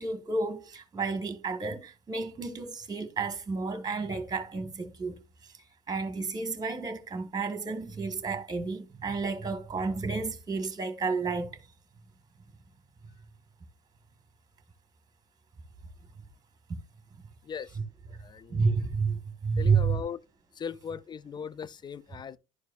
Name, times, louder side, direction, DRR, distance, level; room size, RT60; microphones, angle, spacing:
voice 1, 0.0-5.2 5.9-11.6 17.7-17.8 18.5-20.0, right 4 dB, 20° right, 1.5 m, -31 dB
voice 2, 18.2-18.7 19.6-20.2 20.6-22.4, left 7 dB, 20° left, 0.4 m, -38 dB
12.0 x 4.6 x 2.4 m
supercardioid pair, 95°, 20 cm